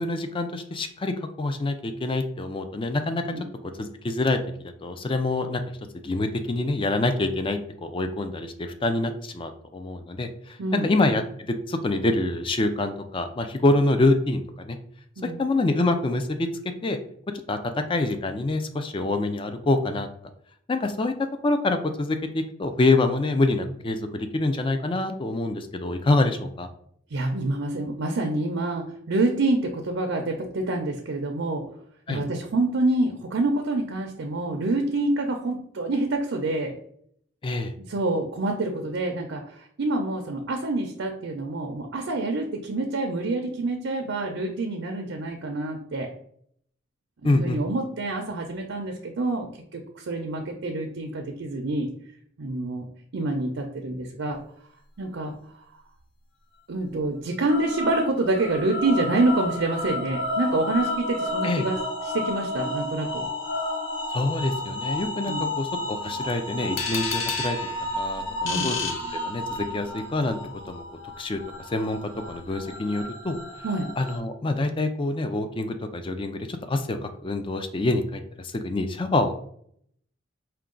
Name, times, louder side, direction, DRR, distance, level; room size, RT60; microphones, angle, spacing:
voice 1, 0.0-3.2 3.8-5.6 6.0-11.2 11.5-14.8 15.2-16.5 16.8-17.0 17.5-17.6 17.9-20.1 20.7-21.1 21.4-26.7 32.1-32.2 37.4-37.7 47.2-47.6 61.4-61.7 64.1-67.6 68.0-69.0 69.2-70.4 70.7-70.8 71.2-71.4 71.7-73.4 74.0-79.3, left 2 dB, 25° left, 7 dB, 0.4 m, -26 dB
voice 2, 27.1-31.6 32.1-36.7 37.9-46.1 47.2-51.9 52.4-52.9 53.1-54.4 55.0-55.3 56.7-61.8 62.0-63.3 65.3-65.5 68.4-68.7 73.6-73.9, right 2 dB, 75° right, 3 dB, 0.6 m, -27 dB
sound 1, 57.5-74.2, left 1 dB, 65° left, 1.2 m, -32 dB
sound 2, 66.8-69.8, left 5 dB, 80° left, 0.7 m, -31 dB
4.5 x 2.3 x 3.7 m, 0.65 s
head